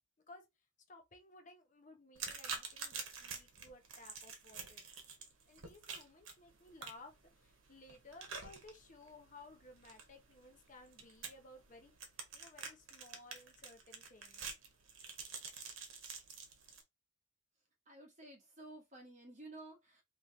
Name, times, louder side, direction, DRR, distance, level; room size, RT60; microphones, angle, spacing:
voice 1, 0.9-4.9 5.5-11.9 12.3-14.4, left 2 dB, 35° left, 0.7 m, -58 dB
sound 1, 2.2-16.8, right 5 dB, 70° right, 1.0 m, -48 dB
voice 2, 17.9-20.0, right 2 dB, 35° right, 1.1 m, -53 dB
3.0 x 2.8 x 3.8 m
head